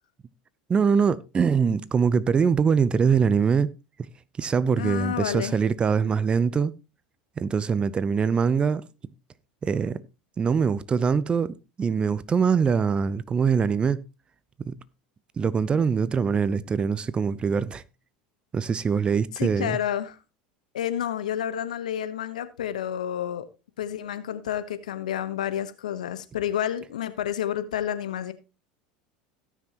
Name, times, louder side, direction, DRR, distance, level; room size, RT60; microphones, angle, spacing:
voice 1, 0.7-3.7 4.4-6.7 7.4-8.8 9.6-10.0 10.4-14.0 14.6-14.7 15.4-17.8 18.5-19.8, right 6 dB, 25° right, 0.7 m, -23 dB
voice 2, 4.7-5.6 19.3-20.2 20.7-23.4 23.8-28.3, left 10 dB, 90° left, 1.0 m, -30 dB
17.5 x 6.2 x 2.9 m
hypercardioid pair, 95°, 4 cm